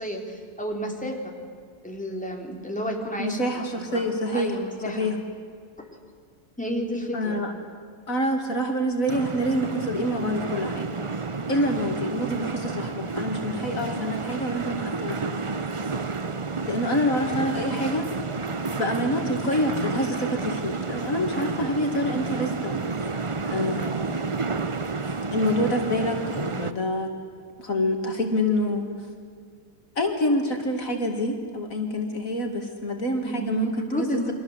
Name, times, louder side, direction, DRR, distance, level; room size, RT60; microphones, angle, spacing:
voice 1, 0.0-1.3 1.8-4.0 4.3-5.1 6.6-7.4 33.2-34.3, equal, 5° left, 0 dB, 3.7 m, -31 dB
voice 2, 3.2-4.6 4.9-5.2 7.1-7.5 8.1-11.0 11.5-15.4 16.6-18.1 18.8-22.8 23.4-24.4 25.3-27.1 27.6-28.9 30.0-34.1, equal, 60° left, 3 dB, 2.6 m, -27 dB
sound 1, 9.1-26.7, right 4 dB, 30° right, 0.6 m, -30 dB
29.5 x 24.5 x 8.1 m, 2.1 s
omnidirectional pair, 1.6 m